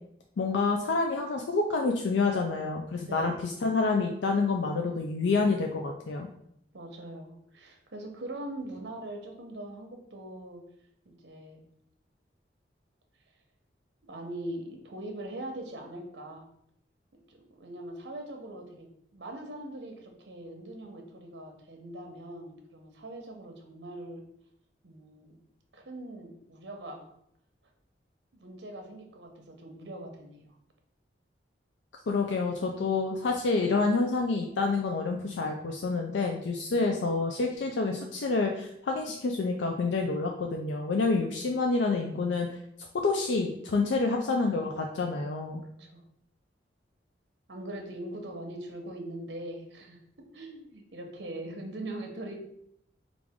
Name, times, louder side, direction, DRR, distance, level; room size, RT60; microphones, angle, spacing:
voice 1, 0.4-6.3 32.1-42.5 43.0-45.6, left 3 dB, 85° left, 2 dB, 0.4 m, -28 dB
voice 2, 3.0-3.6 6.7-10.6 11.0-11.6 14.1-16.5 17.3-18.9 19.1-24.2 24.8-25.4 25.7-27.1 28.3-30.5 45.8-46.0 47.5-50.0 50.3-52.4, right 1 dB, 75° right, 3 dB, 0.9 m, -41 dB
4.8 x 2.5 x 3.5 m, 0.72 s
head